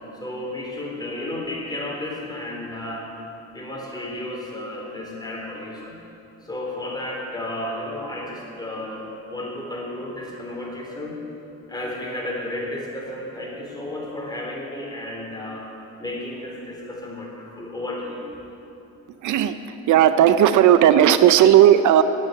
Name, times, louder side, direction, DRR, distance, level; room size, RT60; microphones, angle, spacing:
voice 1, 0.2-3.1 3.5-6.0 6.4-11.2 11.7-15.7 16.0-18.2, left 1 dB, 15° left, -3 dB, 3.7 m, -32 dB
voice 2, 19.2-19.6 19.9-22.0, right 11 dB, 80° right, 11 dB, 0.6 m, -14 dB
10.0 x 9.1 x 9.2 m, 2.9 s
cardioid pair, 90°, 30 cm